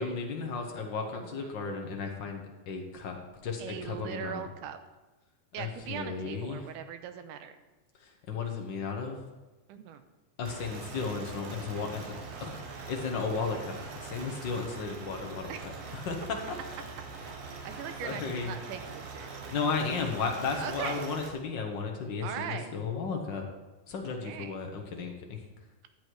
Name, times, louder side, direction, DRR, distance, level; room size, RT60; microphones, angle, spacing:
voice 1, 0.0-4.4 5.6-6.6 8.0-9.2 10.4-12.1 12.4-15.5 15.9-16.2 17.5-17.7 18.0-18.5 19.5-23.5 23.9-25.4, left 4 dB, 70° left, 2 dB, 1.1 m, -34 dB
voice 2, 1.1-1.6 3.6-4.8 5.5-7.5 9.7-10.0 15.5-15.6 17.6-19.6 20.6-21.1 22.2-22.7 24.0-24.5, right 8 dB, 85° right, 9 dB, 2.2 m, -40 dB
sound 1, 10.4-21.3, right 4 dB, 60° right, 2.2 m, -43 dB
11.5 x 8.3 x 4.6 m, 1.2 s
omnidirectional pair, 3.6 m